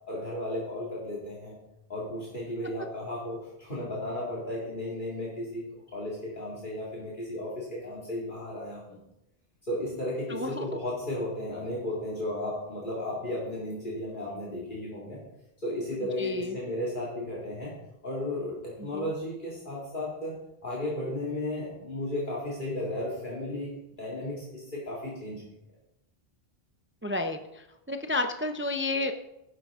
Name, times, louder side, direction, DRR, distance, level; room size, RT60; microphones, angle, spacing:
voice 1, 0.1-1.6 1.9-5.6 5.9-9.0 9.6-15.2 15.6-17.7 18.0-20.3 20.6-25.4, left 1 dB, 55° left, -5 dB, 2.6 m, -34 dB
voice 2, 10.3-10.6 16.2-16.6 18.9-19.1 27.0-29.1, left 2 dB, 15° right, 6 dB, 0.5 m, -31 dB
13.0 x 10.5 x 3.7 m, 0.87 s
omnidirectional pair, 1.0 m